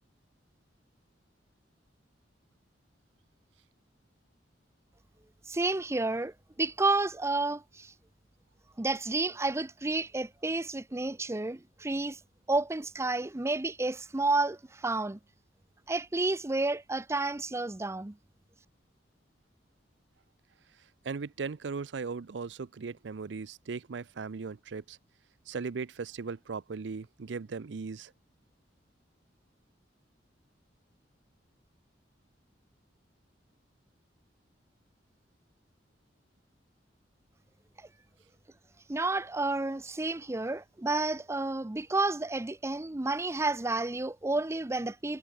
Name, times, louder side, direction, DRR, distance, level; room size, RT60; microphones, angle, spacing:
voice 1, 5.5-7.9 8.8-12.2 12.5-15.2 15.9-18.2 37.8-37.9 38.9-45.2, right 2 dB, 15° right, 0.6 m, -30 dB
voice 2, 21.0-25.0 25.5-28.1, right 4 dB, 70° right, 0.5 m, -38 dB
head